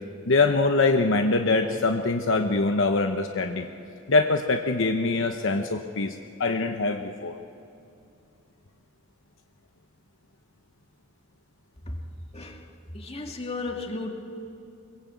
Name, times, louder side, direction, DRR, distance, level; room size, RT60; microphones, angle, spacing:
voice 1, 0.3-3.7 4.1-7.4, left 3 dB, 65° left, 5 dB, 1.0 m, -23 dB
voice 2, 12.9-14.1, left 2 dB, 30° left, 2 dB, 2.3 m, -34 dB
24.5 x 21.5 x 8.3 m, 2.7 s
head